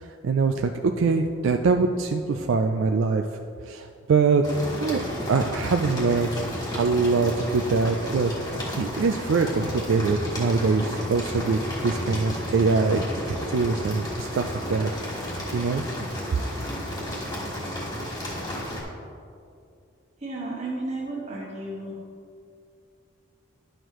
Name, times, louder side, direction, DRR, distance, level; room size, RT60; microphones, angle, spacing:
voice 1, 0.2-3.2 3.7-4.4 4.8-5.0 5.3-6.3 6.7-8.3 8.8-13.0 13.3-14.4 14.7-14.9 15.5-15.8, right 4 dB, 70° right, 5 dB, 0.3 m, -23 dB
sound 1, 4.4-18.8, equal, 20° left, 1.4 m, -32 dB
voice 2, 20.2-22.0, right 2 dB, 35° right, -4 dB, 1.5 m, -33 dB
11.0 x 6.4 x 3.0 m, 2.4 s
head